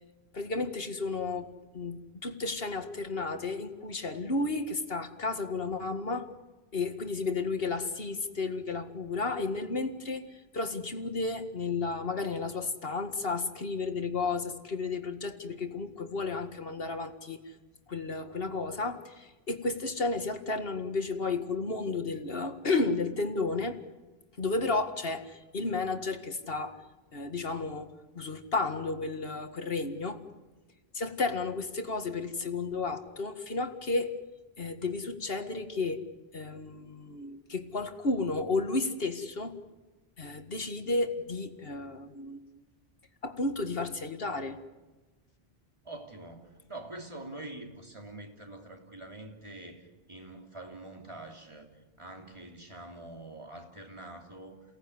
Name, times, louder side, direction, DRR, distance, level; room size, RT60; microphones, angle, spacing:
voice 1, 0.3-6.3 6.7-17.5 17.9-23.8 24.4-26.8 27.1-30.2 30.9-34.1 34.6-36.0 36.3-39.6 40.2-42.4 43.2-44.6, left 3 dB, 65° left, 7 dB, 2.0 m, -32 dB
voice 2, 45.8-54.6, right 2 dB, 30° right, 2 dB, 3.3 m, -45 dB
28.5 x 18.0 x 9.7 m, 1.2 s
omnidirectional pair, 1.1 m